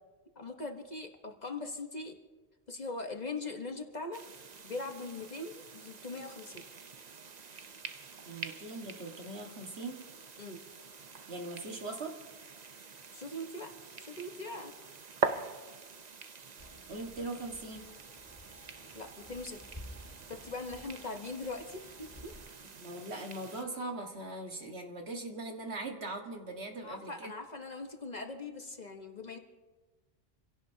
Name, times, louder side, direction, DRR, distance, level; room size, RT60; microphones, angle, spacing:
voice 1, 0.3-2.2 2.7-4.2 4.6-6.6 10.4-10.6 13.1-14.8 18.9-19.6 20.3-22.3 26.8-29.4, left 3 dB, 40° left, 4 dB, 1.3 m, -41 dB
sound 1, 4.1-23.6, right 5 dB, 40° right, 0.8 m, -44 dB
voice 2, 8.3-10.0 11.3-12.2 16.9-17.9 22.8-27.3, right 2 dB, 70° right, 2 dB, 1.9 m, -40 dB
sound 2, 16.6-22.5, left 1 dB, 15° left, 1.0 m, -53 dB
27.5 x 16.5 x 2.8 m, 1.3 s
omnidirectional pair, 1.1 m